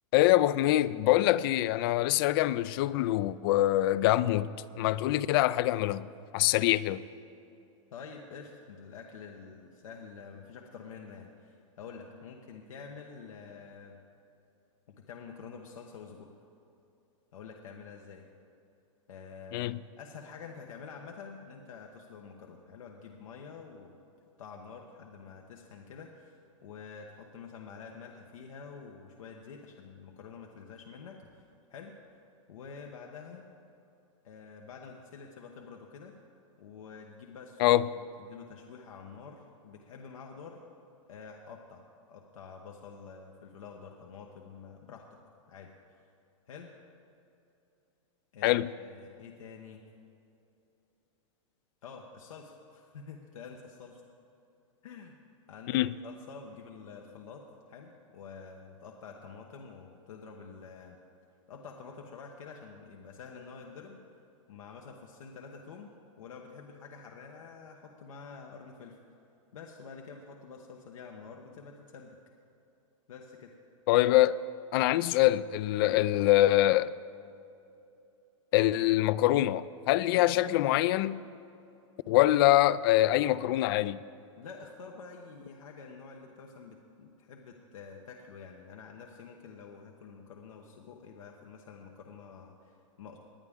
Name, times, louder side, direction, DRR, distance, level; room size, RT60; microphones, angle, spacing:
voice 1, 0.1-4.5 4.8-7.1 19.5-19.8 37.6-37.9 48.4-48.7 55.7-55.9 73.9-74.4 74.7-76.9 78.5-81.2 82.1-84.0, left 15 dB, 45° left, 0.4 m, -24 dB
voice 2, 7.9-13.9 15.1-16.3 17.3-18.2 19.1-19.7 20.0-24.0 24.4-31.9 32.5-33.5 34.2-36.1 36.6-40.6 41.1-41.8 42.1-45.2 45.5-45.7 46.5-46.7 48.3-49.8 51.8-54.0 54.8-55.2 55.5-61.0 61.5-64.0 64.5-65.9 66.2-69.0 69.5-72.2 73.1-73.5 75.8-76.1 80.1-80.3 84.4-93.2, left 5 dB, 85° left, 1.1 m, -48 dB
19.5 x 10.0 x 3.6 m
hypercardioid pair, 145°, 17 cm